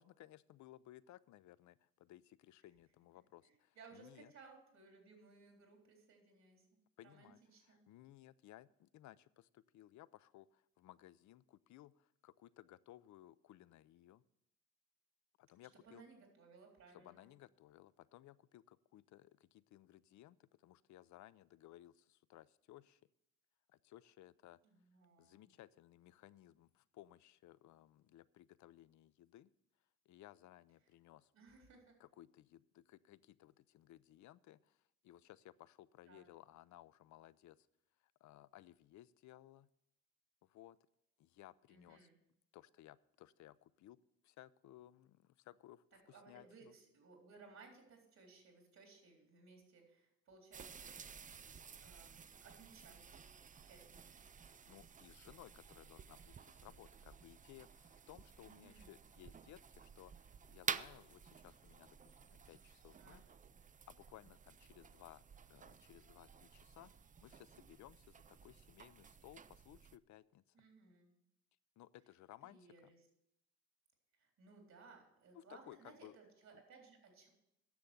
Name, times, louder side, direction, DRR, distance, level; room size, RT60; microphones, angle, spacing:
voice 1, 0.0-4.3 7.0-14.2 15.4-16.0 16.9-23.0 23.7-24.6 25.2-29.5 30.1-31.3 32.0-37.7 38.0-39.7 40.4-40.8 41.2-42.1 42.5-44.0 44.2-46.7 53.6-53.7 54.5-63.2 63.9-65.2 65.5-70.6 71.8-72.9 75.3-76.2 76.5-76.6, left 14 dB, 70° left, 18 dB, 0.5 m, -60 dB
voice 2, 3.5-7.8 15.8-17.3 24.6-25.6 31.3-32.0 36.1-36.3 41.7-42.2 46.1-51.0 51.8-52.1 52.4-53.3 53.7-54.1 58.5-58.9 63.0-63.2 63.5-63.6 70.5-71.1 72.5-73.0 74.2-77.3, right 4 dB, 65° right, 1 dB, 3.8 m, -61 dB
sound 1, 50.5-70.0, right 6 dB, 25° right, 0.4 m, -52 dB
10.5 x 7.1 x 7.8 m, 0.81 s
cardioid pair, 90°, 30 cm